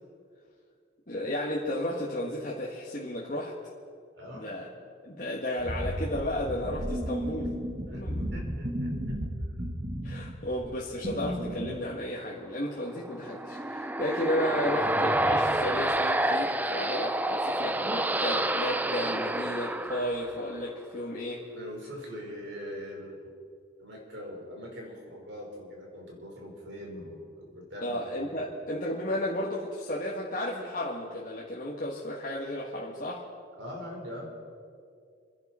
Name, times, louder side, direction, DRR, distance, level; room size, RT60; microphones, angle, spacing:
voice 1, 1.1-3.5 4.3-4.7 5.0-7.5 7.9-8.2 10.0-21.4 27.8-33.2, left 1 dB, 40° left, -5 dB, 1.7 m, -33 dB
voice 2, 4.1-4.6 7.9-9.2 21.5-23.2 23.8-28.3 33.6-34.3, equal, 70° right, -1 dB, 4.7 m, -42 dB
sound 1, 5.6-11.7, equal, 40° right, 2.0 m, -34 dB
sound 2, 13.1-20.6, right 1 dB, 10° right, 0.4 m, -28 dB
28.0 x 10.5 x 4.4 m, 2.3 s
head